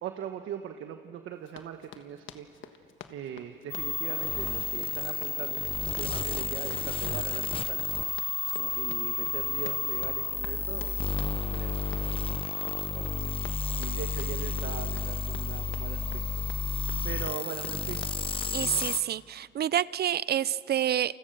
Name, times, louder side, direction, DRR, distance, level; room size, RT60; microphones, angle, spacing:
voice 1, 0.0-2.8 3.1-8.0 8.5-12.2 12.9-13.4 13.7-16.4 17.0-18.1, right 9 dB, 80° right, 6 dB, 1.3 m, -40 dB
Run, 1.4-19.0, left 9 dB, 80° left, 1.5 m, -49 dB
sound 1, 3.7-19.0, left 5 dB, 25° left, 0.8 m, -31 dB
voice 2, 18.5-21.2, right 10 dB, 55° right, 20 dB, 0.6 m, -28 dB
29.0 x 29.0 x 6.8 m, 2.3 s
cardioid pair, 90°, 20 cm